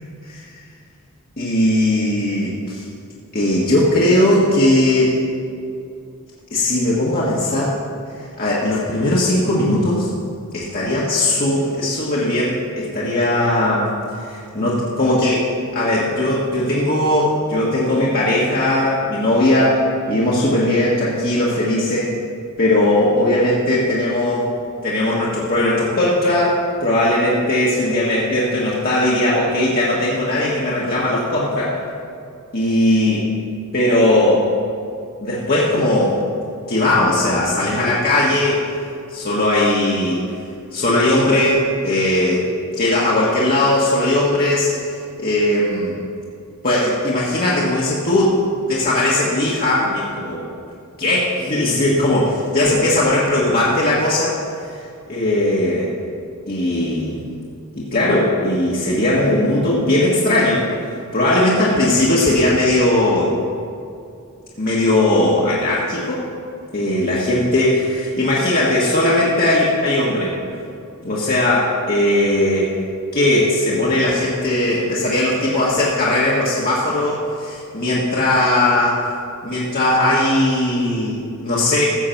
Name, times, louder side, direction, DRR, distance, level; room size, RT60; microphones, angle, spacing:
voice 1, 1.4-2.9 3.3-5.1 6.5-7.7 8.4-10.1 10.5-13.9 14.2-19.8 20.1-22.1 22.6-24.5 24.8-31.8 32.5-33.3 33.7-34.5 35.2-36.2 36.7-38.6 39.1-40.2 40.7-42.5 42.7-44.7 45.2-45.9 46.6-48.4 48.6-50.5 51.0-54.4 54.6-54.8 55.1-55.9 56.5-57.2 57.8-60.7 61.1-63.3 64.6-66.3 66.7-70.4 71.0-72.7 73.1-79.1 79.4-81.9, left 1 dB, 45° left, -6 dB, 1.6 m, -18 dB
14.5 x 7.7 x 5.9 m, 2.5 s
head